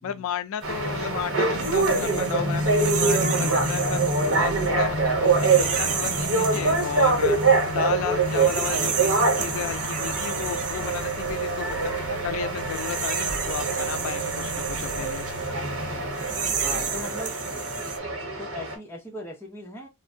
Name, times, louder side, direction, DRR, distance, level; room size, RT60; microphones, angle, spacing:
voice 1, 0.0-4.0 4.3-7.4 7.7-11.9 12.2-15.3, left 9 dB, 85° left, 0.3 m, -33 dB
sound 1, 0.6-17.1, left 1 dB, 60° left, 0.8 m, -40 dB
sound 2, 0.6-18.8, right 3 dB, 85° right, 0.9 m, -25 dB
sound 3, 0.7-18.0, right 7 dB, 40° right, 0.4 m, -33 dB
voice 2, 16.5-17.4 18.4-19.9, equal, 10° left, 0.8 m, -38 dB
3.2 x 2.1 x 2.6 m
head